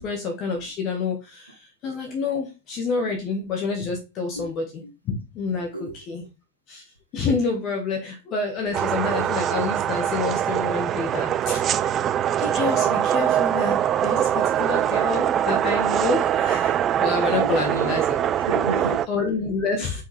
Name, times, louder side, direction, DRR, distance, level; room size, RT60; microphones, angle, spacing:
voice 1, 0.0-4.6 5.0-6.2 6.7-6.8 7.1-12.0 12.4-18.0 19.1-20.0, left 4 dB, 35° left, 1.7 m, -28 dB
voice 2, 5.7-6.3 11.7-12.4 14.1-14.2 17.3-18.0 18.4-19.0, equal, 85° right, 1.5 m, -33 dB
sound 1, 8.7-19.1, right 10 dB, 30° right, 0.3 m, -23 dB
5.6 x 5.2 x 3.4 m
figure-of-eight pair, 90°, 0 cm